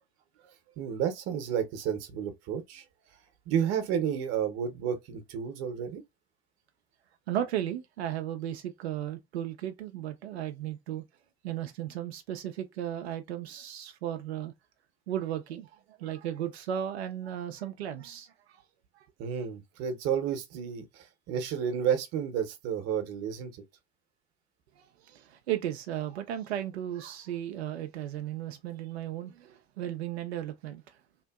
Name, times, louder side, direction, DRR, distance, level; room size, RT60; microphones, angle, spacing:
voice 1, 0.8-2.8 3.5-6.0 19.2-23.6, right 8 dB, 50° right, 0.9 m, -31 dB
voice 2, 7.3-11.0 11.4-14.5 15.1-18.6 19.0-19.1 24.8-31.0, right 11 dB, 75° right, 0.5 m, -35 dB
2.9 x 2.5 x 2.3 m
figure-of-eight pair, 65°, 32 cm